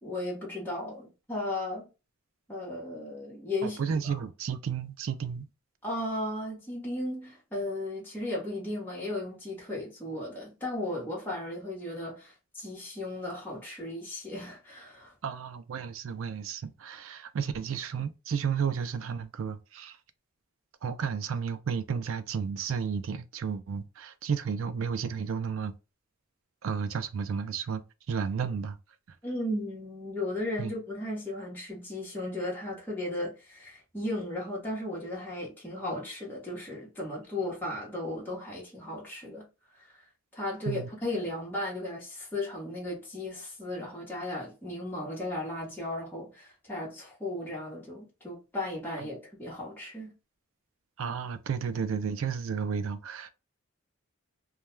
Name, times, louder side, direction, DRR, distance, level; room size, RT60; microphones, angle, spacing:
voice 1, 0.0-1.9 2.5-3.8 4.1-4.2 5.8-15.1 29.2-39.4 39.8-40.1 40.3-50.1, left 1 dB, 10° left, 0.9 m, -35 dB
voice 2, 3.6-5.5 15.2-20.0 20.8-25.7 26.6-28.8 30.6-30.7 40.7-40.9 51.0-53.3, right 6 dB, 70° right, 0.4 m, -32 dB
2.2 x 2.2 x 3.0 m
head